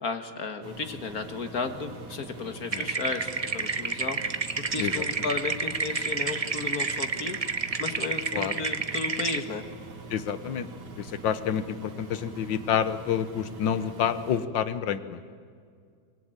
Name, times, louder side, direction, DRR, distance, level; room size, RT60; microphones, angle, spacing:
voice 1, 0.0-4.2 4.7-7.4 7.8-9.7, left 4 dB, 50° left, 7 dB, 1.8 m, -34 dB
Engine, 0.6-14.4, right 3 dB, 85° right, 2.7 m, -44 dB
sound 1, 2.7-9.4, right 4 dB, 35° right, 0.5 m, -30 dB
voice 2, 10.1-10.7 11.0-15.2, left 8 dB, 70° left, 13 dB, 1.7 m, -28 dB
24.5 x 22.0 x 9.0 m, 2.1 s
omnidirectional pair, 2.1 m